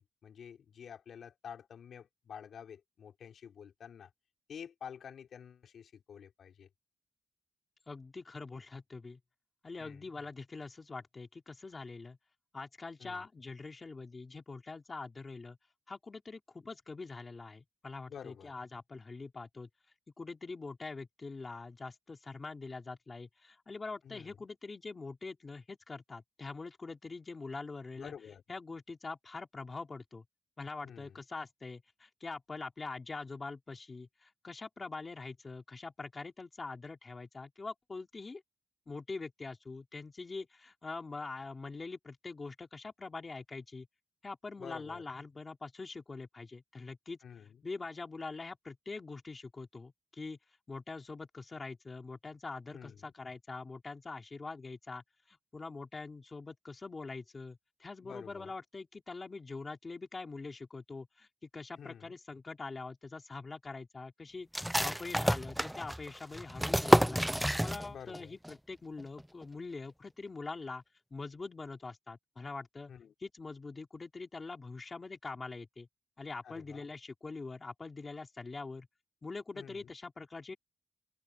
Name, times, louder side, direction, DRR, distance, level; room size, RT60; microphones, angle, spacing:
voice 1, 0.0-4.1 4.5-6.7 9.8-10.1 13.0-13.2 18.1-18.5 24.0-24.5 28.0-28.4 30.8-31.2 44.6-45.0 47.2-47.6 52.7-53.1 58.0-58.5 61.8-62.2 67.9-68.4 72.9-73.1 76.4-76.9 79.5-79.9, left 8 dB, 65° left, 4.4 m, -49 dB
voice 2, 7.9-9.2 9.6-12.2 12.5-15.6 15.9-19.7 20.2-28.1 28.5-30.2 30.6-38.4 38.9-43.9 44.2-47.2 47.6-50.4 50.7-67.3 67.6-70.8 71.1-72.9 73.2-75.9 76.2-78.9 79.2-80.6, left 3 dB, 25° left, 3.0 m, -44 dB
sound 1, 64.5-68.2 68.4-68.5 69.0-69.4, equal, ahead, 0.3 m, -29 dB
wide cardioid pair, 155°, 0 cm